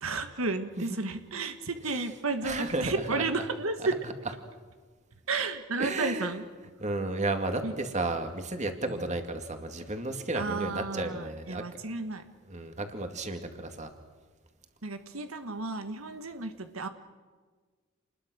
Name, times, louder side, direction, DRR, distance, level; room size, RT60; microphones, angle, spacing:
voice 1, 0.0-4.0 5.3-6.4 7.6-7.7 8.9-9.1 10.3-12.2 14.8-16.9, right 3 dB, 90° right, 8 dB, 1.6 m, -32 dB
voice 2, 2.4-3.2 5.8-6.3 6.8-11.6 12.5-13.9, right 2 dB, 35° right, 6 dB, 2.4 m, -33 dB
28.5 x 21.0 x 6.3 m, 1.5 s
head